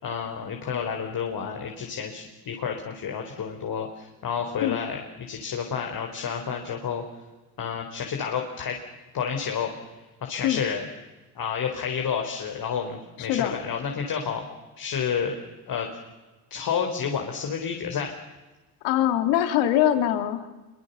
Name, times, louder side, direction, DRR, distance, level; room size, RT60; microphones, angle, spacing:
voice 1, 0.0-7.0 7.6-8.8 9.1-9.7 10.2-10.8 11.3-14.4 14.8-15.3 15.7-15.9 16.5-18.1, left 7 dB, 50° left, 3 dB, 4.4 m, -30 dB
voice 2, 13.2-13.6 18.8-20.5, left 11 dB, 75° left, 8 dB, 2.9 m, -23 dB
26.0 x 24.5 x 7.0 m, 1.2 s
supercardioid pair, 80°, 45 cm